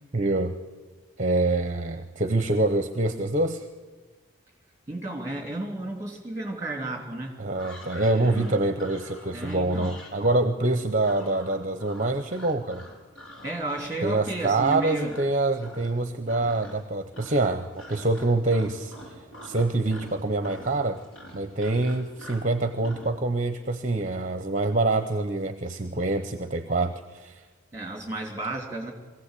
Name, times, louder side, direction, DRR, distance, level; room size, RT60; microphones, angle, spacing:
voice 1, 0.1-0.5 1.2-3.7 7.4-12.8 14.0-21.0 21.3-27.4, right 2 dB, 35° right, 9 dB, 0.8 m, -26 dB
voice 2, 4.9-7.4 8.0-8.5 9.3-9.9 13.4-15.1 27.7-28.9, right 2 dB, 15° right, 2 dB, 3.3 m, -33 dB
sound 1, 7.5-15.3 15.6-16.0 16.3-16.9 17.1-23.1, equal, 80° left, 6.6 m, -45 dB
23.0 x 16.0 x 8.4 m, 1.3 s
head